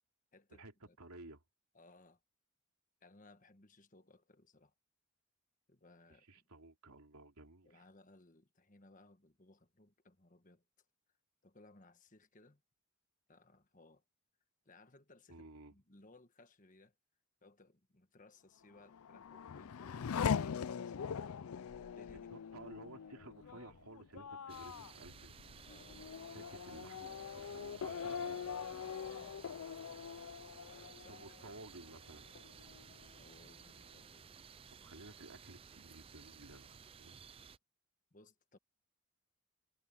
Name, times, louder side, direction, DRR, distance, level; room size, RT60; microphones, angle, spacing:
voice 1, 0.3-1.0 1.7-2.2 3.0-4.7 5.7-6.5 7.6-10.8 11.4-12.6 13.3-14.0 14.6-15.4 15.7-17.0 17.4-21.4 21.8-22.3 22.6-22.7 25.6-26.5 29.1-29.6 30.7-31.5 33.2-35.0 38.1-38.6, left 2 dB, 35° left, 1.5 m, -63 dB
voice 2, 1.0-1.4 6.3-7.8 15.3-15.7 22.3-25.4 26.3-28.4 31.1-32.3 34.8-37.2, right 2 dB, 85° right, 3.1 m, -54 dB
Race car auto racing / Accelerating revving vroom, 18.7-32.0 32.4-33.1, left 7 dB, 75° left, 0.4 m, -42 dB
sound 1, 24.5-37.6, right 6 dB, 25° right, 0.4 m, -56 dB
head